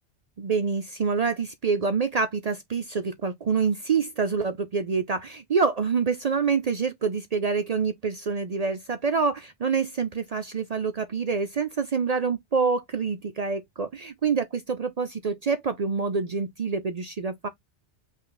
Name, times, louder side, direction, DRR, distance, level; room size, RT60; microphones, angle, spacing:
voice 1, 0.4-17.5, right 5 dB, 55° right, 0.4 m, -26 dB
5.5 x 2.5 x 3.9 m
omnidirectional pair, 1.2 m